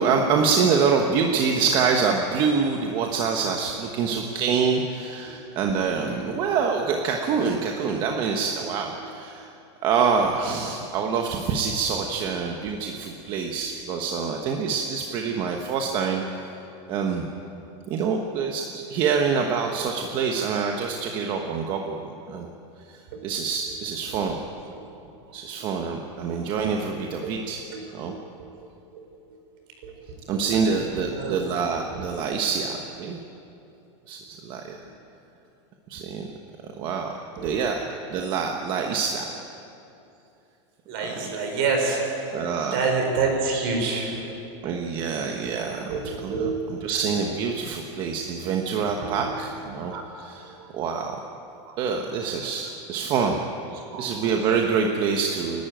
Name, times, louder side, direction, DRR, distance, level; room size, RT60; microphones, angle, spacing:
voice 1, 0.0-9.5 9.8-16.2 16.9-17.3 17.9-22.5 22.9-23.0 23.2-24.4 25.3-27.6 27.9-28.1 30.3-33.2 34.1-34.8 35.9-36.3 36.8-37.1 37.4-37.8 38.1-39.3 41.0-41.1 42.3-42.8 44.6-45.9 46.2-46.5 46.8-51.1 51.8-53.4 54.0-55.6, right 5 dB, 30° right, 2 dB, 1.2 m, -26 dB
voice 2, 26.1-26.4 27.2-27.4 27.7-28.5 28.9-29.0 29.8-30.6 31.0-31.7 31.9-32.1 37.3-37.6 40.9-44.5 44.9-45.0 45.4-45.5 45.9-46.9 48.8-49.5 49.8-50.3 50.6-50.7 51.7-51.8 53.7-54.0, right 4 dB, 50° right, 3 dB, 4.7 m, -29 dB
29.0 x 12.0 x 9.1 m, 2.8 s
supercardioid pair, 175°, 16 cm